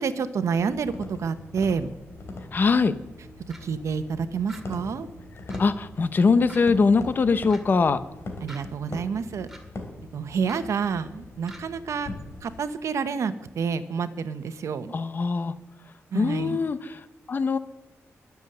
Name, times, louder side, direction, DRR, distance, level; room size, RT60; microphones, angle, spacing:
voice 1, 0.0-1.9 3.6-5.1 8.4-9.5 10.1-12.1 12.4-14.9 16.1-16.6, right 6 dB, 75° right, 11 dB, 1.0 m, -28 dB
sound 1, 0.6-12.6, left 2 dB, 55° left, 3.2 m, -41 dB
voice 2, 2.5-2.9 5.6-8.0 14.9-15.5 16.1-17.6, left 4 dB, 40° left, 12 dB, 0.8 m, -22 dB
sound 2, 3.5-3.6 4.5-4.6 5.5-5.6 6.5-6.6 7.5-7.6 8.5-8.6 9.5-9.6 10.5-10.6 11.5-11.6, right 1 dB, 5° right, 2.2 m, -44 dB
21.5 x 7.2 x 7.9 m, 0.95 s
wide cardioid pair, 175°, 5 cm